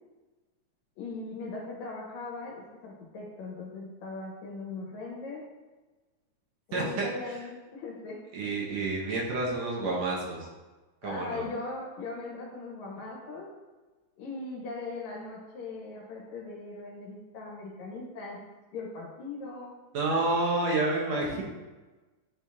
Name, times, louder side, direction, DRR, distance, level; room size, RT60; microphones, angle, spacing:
voice 1, 1.0-5.5 6.7-8.2 11.0-13.5 14.2-18.4 18.7-19.7 21.1-21.4, left 3 dB, 70° left, -2 dB, 2.6 m, -39 dB
voice 2, 6.7-7.1 8.3-10.5 11.0-11.4 19.9-21.4, right 2 dB, 70° right, -2 dB, 2.0 m, -29 dB
10.0 x 4.4 x 2.3 m, 1.2 s
omnidirectional pair, 3.4 m